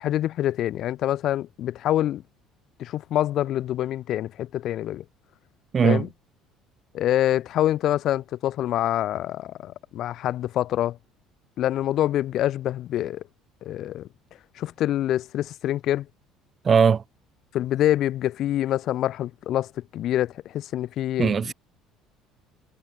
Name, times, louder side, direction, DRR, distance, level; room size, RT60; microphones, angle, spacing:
voice 1, 0.0-2.2 2.8-5.0 5.8-6.1 6.9-11.0 11.6-13.2 13.6-14.1 14.6-16.1 17.5-21.5, left 12 dB, 50° left, 0.3 m, -26 dB
voice 2, 5.7-6.1 16.6-17.0 21.2-21.5, right 6 dB, 30° right, 0.6 m, -19 dB
cardioid pair, 145°, 0 cm